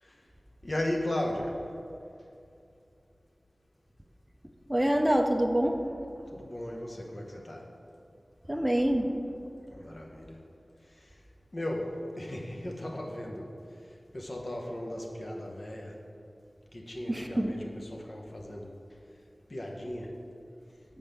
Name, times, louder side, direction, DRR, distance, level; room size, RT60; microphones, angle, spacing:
voice 1, 0.6-1.6 6.3-7.6 9.7-10.4 11.5-13.5 14.1-15.9 16.7-18.7 19.5-20.1, left 1 dB, 50° left, 0 dB, 1.2 m, -36 dB
voice 2, 4.7-5.8 8.5-9.1 17.1-17.5, right 1 dB, 15° right, 3 dB, 0.6 m, -25 dB
7.7 x 5.3 x 6.8 m, 2.5 s
wide cardioid pair, 65°, 0 cm